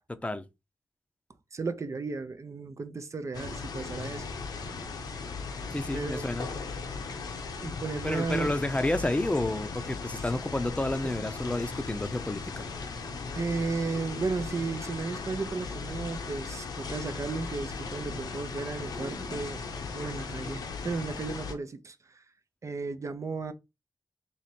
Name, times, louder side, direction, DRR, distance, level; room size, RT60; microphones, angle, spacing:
voice 1, 0.1-0.5 5.7-6.5 8.0-12.7, left 1 dB, 20° left, 0.6 m, -30 dB
voice 2, 1.5-4.3 5.9-6.4 7.5-8.5 11.0-11.2 13.3-19.6 19.9-22.2 22.6-23.5, right 4 dB, 50° right, 0.6 m, -34 dB
sound 1, 3.3-21.5, left 4 dB, 90° left, 0.8 m, -37 dB
3.1 x 3.1 x 4.2 m
cardioid pair, 55°, 7 cm